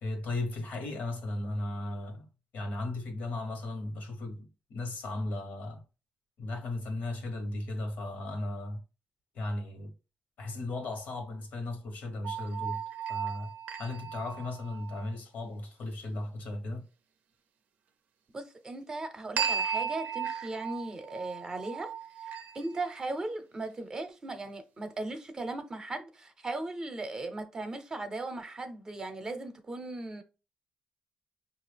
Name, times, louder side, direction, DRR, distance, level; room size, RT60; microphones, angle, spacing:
voice 1, 0.0-2.3 2.5-5.8 6.4-8.8 9.3-9.9 10.4-12.8 13.1-16.9, left 2 dB, 85° left, 1.2 m, -36 dB
sound 1, 12.2-15.1 19.4-22.9, right 7 dB, 90° right, 0.5 m, -35 dB
voice 2, 18.3-21.9 22.5-30.2, right 2 dB, 25° right, 0.7 m, -37 dB
5.6 x 2.4 x 3.4 m
cardioid pair, 135°, 3 cm